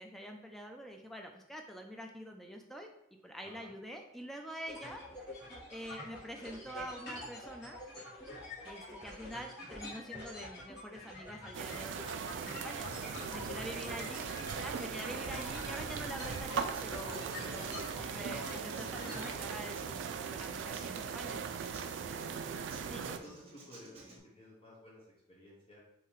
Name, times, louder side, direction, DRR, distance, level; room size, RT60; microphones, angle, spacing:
voice 1, 0.0-2.9 3.2-5.0 5.7-7.8 8.6-12.1 12.3-12.9 13.3-14.3 14.6-21.4 22.9-23.0, equal, ahead, 3 dB, 0.4 m, -46 dB
voice 2, 3.4-3.7 12.8-14.2 22.1-22.6 22.9-25.8, left 1 dB, 30° left, -5 dB, 0.9 m, -55 dB
sound 1, 4.6-19.3, left 1 dB, 55° left, 1.6 m, -46 dB
sound 2, 11.5-23.2, right 6 dB, 65° right, 0.3 m, -39 dB
Human voice / Acoustic guitar, 16.2-24.2, right 2 dB, 30° right, 1.0 m, -55 dB
5.5 x 2.9 x 3.1 m, 0.82 s
head